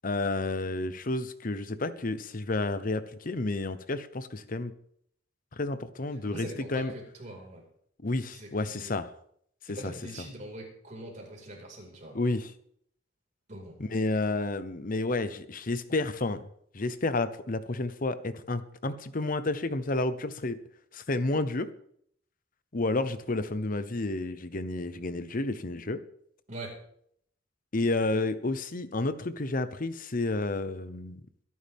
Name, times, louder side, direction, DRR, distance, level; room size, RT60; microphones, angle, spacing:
voice 1, 0.0-4.7 5.5-6.9 8.0-9.1 9.7-9.9 10.2-10.3 12.1-12.5 13.8-16.4 16.7-20.6 20.9-21.7 22.7-26.0 27.7-31.2, left 2 dB, 45° left, 13 dB, 0.9 m, -30 dB
voice 2, 6.2-7.6 8.3-8.9 9.7-12.2 13.5-13.7 26.5-26.7, right 1 dB, 40° right, -1 dB, 5.2 m, -43 dB
22.0 x 11.0 x 3.6 m, 0.66 s
head